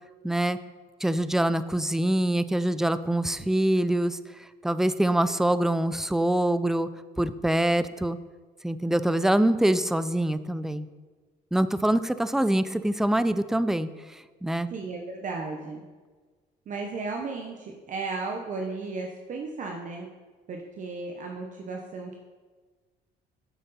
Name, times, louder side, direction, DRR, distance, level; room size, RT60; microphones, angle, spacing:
voice 1, 0.2-0.6 1.0-6.9 7.2-8.2 8.6-10.9 11.5-14.7, right 1 dB, 5° right, 13 dB, 0.4 m, -25 dB
voice 2, 14.7-15.8 16.7-20.1 20.5-22.2, right 3 dB, 50° right, 2 dB, 1.0 m, -34 dB
9.4 x 7.7 x 4.2 m, 1.4 s
cardioid pair, 110°, 17 cm